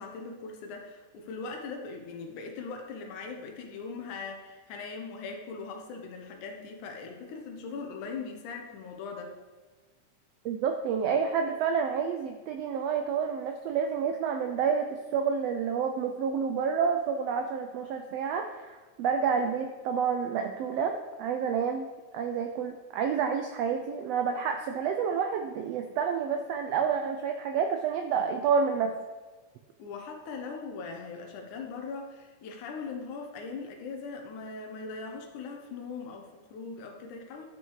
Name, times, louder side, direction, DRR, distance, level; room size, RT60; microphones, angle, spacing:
voice 1, 0.0-9.4 29.8-37.5, left 4 dB, 80° left, 2 dB, 2.4 m, -40 dB
voice 2, 10.4-21.9 22.1-29.0, right 6 dB, 90° right, 5 dB, 1.4 m, -29 dB
11.0 x 5.5 x 4.8 m, 1.3 s
omnidirectional pair, 3.5 m